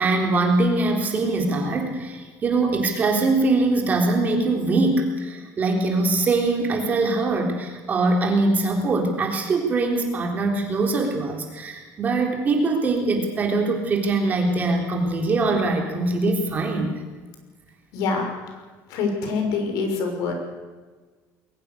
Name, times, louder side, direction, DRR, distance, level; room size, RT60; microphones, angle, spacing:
voice 1, 0.0-17.0, right 2 dB, 25° right, 2 dB, 3.8 m, -22 dB
voice 2, 17.9-18.6 18.9-20.3, left 4 dB, 70° left, 4 dB, 6.2 m, -25 dB
21.5 x 19.5 x 6.7 m, 1.3 s
cardioid pair, 170°, 7 cm